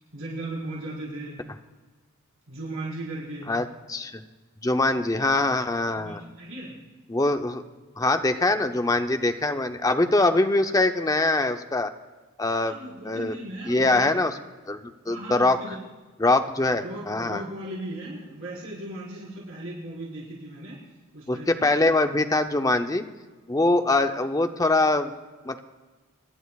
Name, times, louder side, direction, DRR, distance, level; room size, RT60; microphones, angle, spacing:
voice 1, 0.1-1.4 2.5-3.5 6.0-6.8 12.6-14.1 15.0-15.8 16.6-20.8 21.1-21.7, right 1 dB, 75° right, -7 dB, 4.9 m, -37 dB
voice 2, 3.5-4.2 4.6-6.2 7.1-7.6 8.0-11.9 12.4-12.8 13.0-13.3 13.7-14.4 14.7-15.6 16.2-17.4 21.3-23.0 23.5-25.1 25.4-25.6, left 2 dB, 15° left, 7 dB, 0.6 m, -23 dB
25.5 x 11.5 x 2.4 m, 1.3 s
head